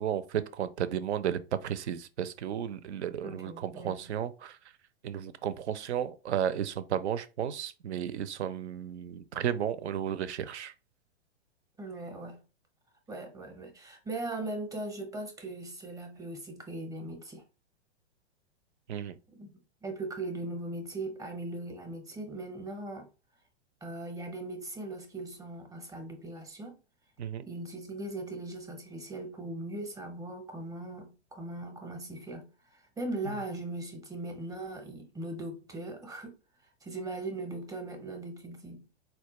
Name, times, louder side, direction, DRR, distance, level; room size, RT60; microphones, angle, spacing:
voice 1, 0.0-4.6 5.0-10.7 18.9-19.2 27.2-27.4, right 9 dB, 80° right, 0.5 m, -33 dB
voice 2, 3.2-4.1 11.8-12.4 13.1-17.4 19.3-23.1 23.8-26.8 27.4-36.4 36.8-38.8, right 2 dB, 10° right, 0.6 m, -39 dB
4.2 x 2.2 x 2.9 m
hypercardioid pair, 125°, 34 cm